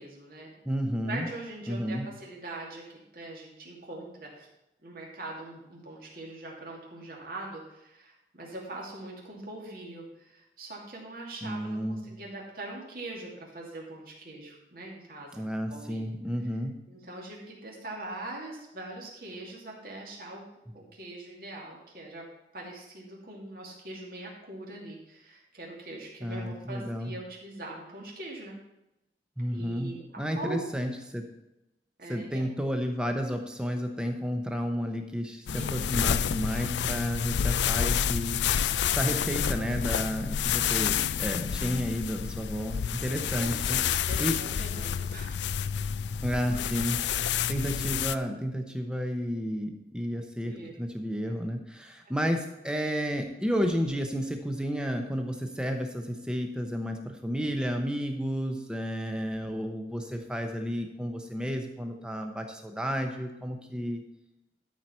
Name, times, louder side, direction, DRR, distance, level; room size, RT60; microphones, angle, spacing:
voice 1, 0.0-0.5 1.0-4.5 4.8-15.4 15.7-16.1 16.9-20.4 20.7-22.3 22.5-28.6 29.5-30.6 32.0-32.4 35.5-35.9 40.6-41.4 43.4-45.4 50.4-50.7, right 2 dB, 55° right, -3 dB, 2.6 m, -42 dB
voice 2, 0.6-1.3 1.7-2.1 11.4-12.1 15.3-16.8 20.7-20.8 26.2-27.1 29.4-31.2 32.1-44.4 46.2-47.0 47.5-64.0, equal, 5° right, 4 dB, 0.9 m, -32 dB
sound 1, 35.5-48.1, left 8 dB, 80° left, 0.4 m, -29 dB
13.5 x 4.8 x 5.7 m, 0.93 s
head